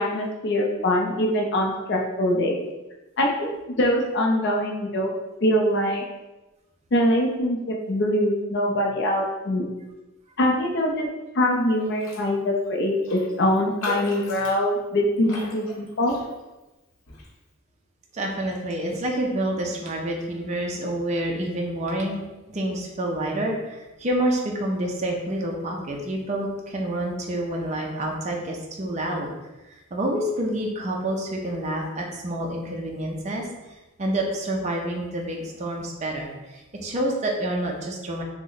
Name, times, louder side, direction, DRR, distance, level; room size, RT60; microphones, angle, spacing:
voice 1, 0.0-2.6 3.2-5.1 5.4-6.0 6.9-9.7 10.4-11.1 11.3-16.1, left 1 dB, 55° left, 0 dB, 0.4 m, -23 dB
Raindrop, 11.9-12.3 12.6-12.7 13.0-16.6 17.1-17.3, left 2 dB, 75° left, 0.8 m, -37 dB
voice 2, 18.1-29.3 29.9-33.5 34.0-38.2, right 1 dB, 35° right, 0 dB, 0.4 m, -28 dB
2.9 x 2.1 x 3.8 m, 1.1 s
head